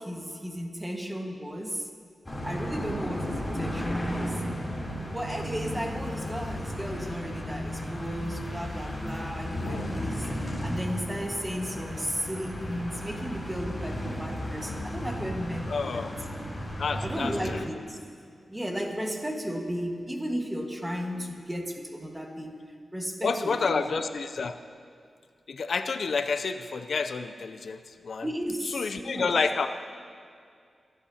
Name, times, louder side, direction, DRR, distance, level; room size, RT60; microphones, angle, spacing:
voice 1, 0.0-1.9 2.4-4.4 5.1-16.1 17.0-18.1 18.5-22.6 22.9-24.0 28.2-29.4, equal, 10° right, 2 dB, 1.5 m, -34 dB
sound 1, 2.3-17.6, equal, 15° left, 3.2 m, -34 dB
sound 2, 5.5-15.4, left 4 dB, 90° left, 0.9 m, -47 dB
voice 2, 15.7-16.1 16.8-17.6 23.2-24.6 25.5-27.8 28.0-28.3 28.7-29.7, left 4 dB, 65° left, 9 dB, 0.5 m, -29 dB
27.5 x 11.5 x 2.8 m, 2.2 s
wide cardioid pair, 105°, 0 cm